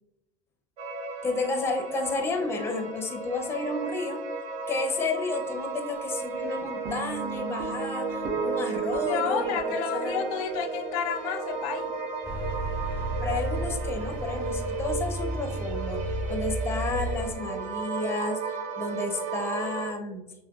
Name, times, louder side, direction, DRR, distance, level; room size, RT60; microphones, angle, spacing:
sound 1, 0.8-19.9, right 4 dB, 45° right, 0.6 m, -35 dB
voice 1, 1.2-4.2 4.7-9.6 9.9-10.3 13.2-20.2, left 3 dB, 15° left, 4 dB, 0.6 m, -31 dB
sound 2, 6.9-13.4, right 6 dB, 75° right, 1.1 m, -36 dB
voice 2, 8.9-12.0, left 7 dB, 75° left, 8 dB, 0.5 m, -31 dB
sound 3, 12.2-17.3, right 1 dB, 15° right, 1.2 m, -32 dB
5.6 x 2.2 x 2.3 m, 0.95 s
supercardioid pair, 125°, 17 cm